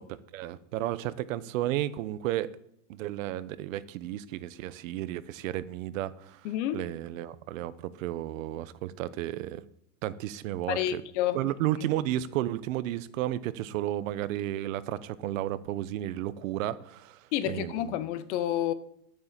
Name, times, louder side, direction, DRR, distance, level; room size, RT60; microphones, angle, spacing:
voice 1, 0.3-2.5 2.9-6.4 6.7-9.6 10.0-11.0 11.3-17.2 17.5-18.0, right 13 dB, 60° right, 0.9 m, -33 dB
voice 2, 6.4-6.9 10.7-11.4 17.3-18.7, left 12 dB, 50° left, 1.0 m, -29 dB
9.7 x 9.6 x 7.5 m
supercardioid pair, 160°, 44 cm